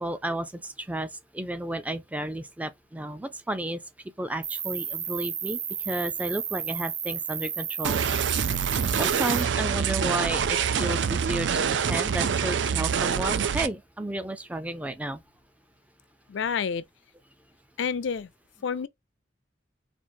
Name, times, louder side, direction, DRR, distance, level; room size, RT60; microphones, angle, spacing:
voice 1, 0.0-3.8 4.2-5.6 5.9-8.0 9.0-15.2, right 1 dB, 10° right, 0.4 m, -32 dB
Cricket, 4.4-9.4, right 8 dB, 40° right, 0.7 m, -33 dB
sound 1, 7.8-13.7, right 7 dB, 70° right, 0.4 m, -26 dB
voice 2, 16.3-16.8 17.8-18.3 18.6-18.9, left 6 dB, 75° left, 0.4 m, -28 dB
4.4 x 2.5 x 2.7 m
head